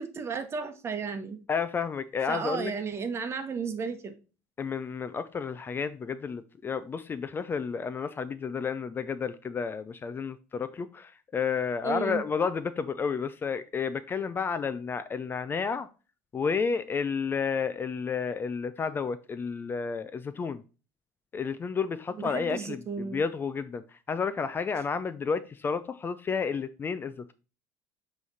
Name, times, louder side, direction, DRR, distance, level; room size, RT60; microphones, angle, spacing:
voice 1, 0.0-1.4 2.3-4.2 11.8-12.2 22.1-23.2, right 5 dB, 30° right, 1.1 m, -34 dB
voice 2, 1.5-2.7 4.6-15.9 16.3-20.6 21.3-27.3, left 5 dB, 25° left, 0.4 m, -31 dB
7.7 x 3.2 x 4.1 m
supercardioid pair, 110°, 8 cm